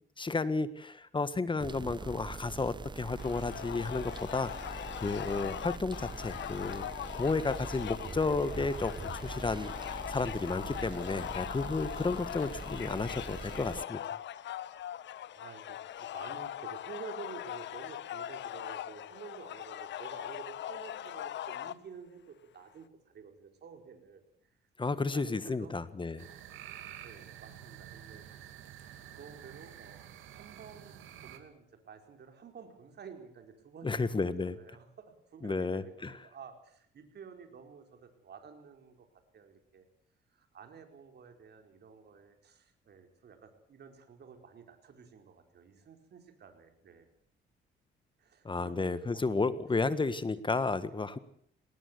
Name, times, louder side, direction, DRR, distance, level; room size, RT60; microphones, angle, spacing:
voice 1, 0.2-6.9 7.1-8.9 9.2-14.2 24.8-26.3 33.8-34.6 35.4-36.2 48.4-51.2, left 3 dB, 25° left, 14 dB, 1.6 m, -32 dB
sound 1, 1.6-13.9, right 4 dB, 25° right, 0.9 m, -43 dB
sound 2, 3.2-21.7, left 11 dB, 70° left, 0.9 m, -41 dB
voice 2, 15.3-24.6 24.9-25.7 26.8-28.6 29.1-30.0 30.3-34.2 34.5-39.1 39.3-39.9 40.3-47.1 48.2-49.4, right 6 dB, 55° right, 5 dB, 4.6 m, -51 dB
sound 3, 26.2-31.4, right 10 dB, 85° right, 2.5 m, -49 dB
20.0 x 19.0 x 8.3 m, 0.64 s
cardioid pair, 90°, 20 cm